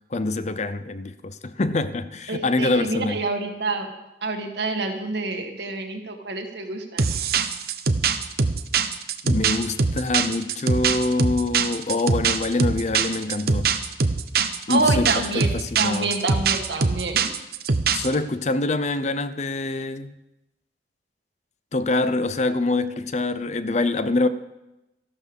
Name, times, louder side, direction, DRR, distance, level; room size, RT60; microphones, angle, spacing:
voice 1, 0.1-3.2 9.2-13.7 14.7-16.1 17.9-20.1 21.7-24.3, left 2 dB, 40° left, 0.6 m, -25 dB
voice 2, 2.3-3.9 4.2-7.1 14.7-17.3, right 3 dB, 75° right, 2.0 m, -27 dB
sound 1, 7.0-18.1, right 5 dB, 60° right, 0.8 m, -23 dB
14.0 x 12.5 x 5.4 m
head